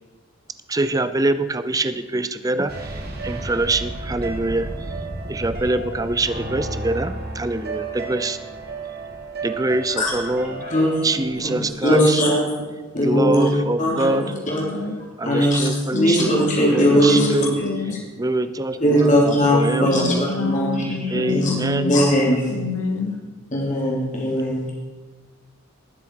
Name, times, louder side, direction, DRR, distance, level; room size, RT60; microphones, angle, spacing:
voice 1, 0.7-4.7 5.3-8.4 9.4-10.7 11.0-12.2 13.0-14.3 15.2-17.6 18.2-20.4 21.1-21.9, right 2 dB, 15° right, 12 dB, 0.5 m, -24 dB
sound 1, 2.7-11.7, right 2 dB, 50° right, 2.2 m, -32 dB
voice 2, 11.4-12.4 12.9-13.5 13.8-14.2 14.5-14.6 15.2-17.7 18.8-20.9 21.3-22.4 23.5-24.7, equal, 35° left, -3 dB, 3.1 m, -19 dB
voice 3, 13.8-15.0 15.9-18.0 19.8-21.9 22.5-23.1, left 3 dB, 75° left, 6 dB, 1.3 m, -28 dB
19.0 x 7.3 x 4.7 m, 1.3 s
head